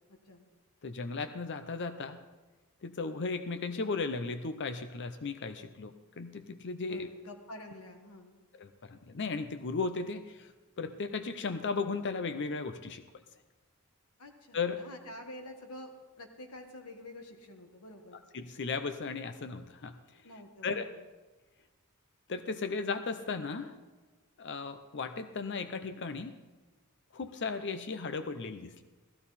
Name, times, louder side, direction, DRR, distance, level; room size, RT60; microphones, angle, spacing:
voice 1, 0.1-0.5 6.9-8.4 14.2-18.2 20.2-21.0, left 1 dB, 80° left, 4 dB, 1.7 m, -48 dB
voice 2, 0.8-2.2 2.8-7.1 8.5-10.5 10.8-13.0 14.5-14.8 18.3-20.0 20.6-20.9 22.3-23.7 24.4-26.3 27.1-28.8, left 4 dB, 55° left, 10 dB, 0.6 m, -36 dB
16.0 x 14.0 x 4.2 m, 1.3 s
head